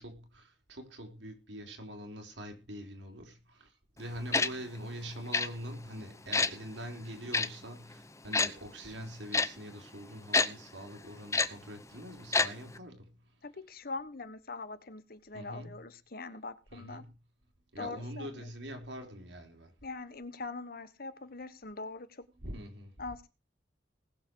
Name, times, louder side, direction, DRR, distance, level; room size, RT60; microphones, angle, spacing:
voice 1, 0.0-3.7 4.0-13.1 15.3-15.7 16.7-17.1 17.7-19.7 22.4-22.9, equal, 85° right, 4.2 m, -44 dB
Tick-tock, 4.3-4.5 5.3-5.5 6.3-6.5 7.3-7.5 8.3-8.5 9.3-9.5 10.3-10.5 11.3-11.5 12.3-12.5 12.7-12.8, left 3 dB, 15° left, 0.8 m, -26 dB
voice 2, 13.4-17.0 17.8-18.5 19.8-22.3 23.0-23.3, left 3 dB, 55° left, 1.2 m, -42 dB
19.5 x 7.3 x 4.8 m
head